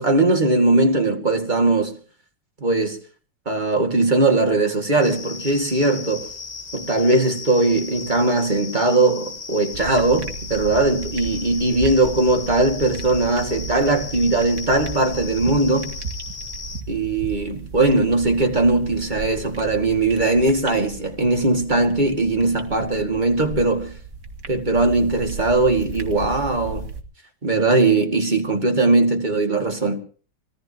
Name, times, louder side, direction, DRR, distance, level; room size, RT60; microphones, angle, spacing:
voice 1, 0.0-2.0 2.6-3.0 3.5-6.3 6.7-16.0 16.9-24.0 24.5-26.9 27.4-30.0, right 2 dB, 25° right, 2.3 m, -20 dB
sound 1, 5.0-16.8, left 4 dB, 30° left, 1.0 m, -36 dB
sound 2, 9.7-27.0, right 4 dB, 50° right, 2.1 m, -35 dB
26.0 x 17.5 x 3.0 m
omnidirectional pair, 2.0 m